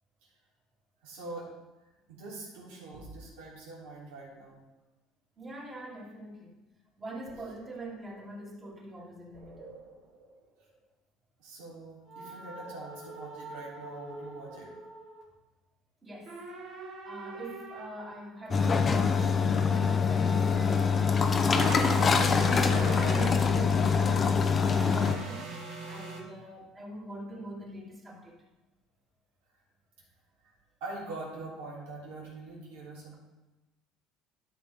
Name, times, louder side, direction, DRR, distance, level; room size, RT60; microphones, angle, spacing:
voice 1, 1.0-1.5 2.1-4.6 11.4-14.7 16.7-16.8 30.4-30.5 30.8-33.2, right 2 dB, 90° right, -5 dB, 3.3 m, -43 dB
voice 2, 5.4-6.6 7.0-9.7 16.0-16.4 17.0-25.5 25.9-28.4, right 1 dB, 25° right, -5 dB, 2.9 m, -43 dB
sound 1, 7.3-7.8 8.2-8.3 9.3-10.3 12.1-15.2 16.3-18.1 21.5-23.5 23.8-26.2, right 3 dB, 75° right, 2.1 m, -40 dB
sound 2, 18.5-25.2, left 5 dB, 25° left, 0.7 m, -24 dB
12.5 x 5.8 x 3.6 m, 1.1 s
cardioid pair, 120°, 0 cm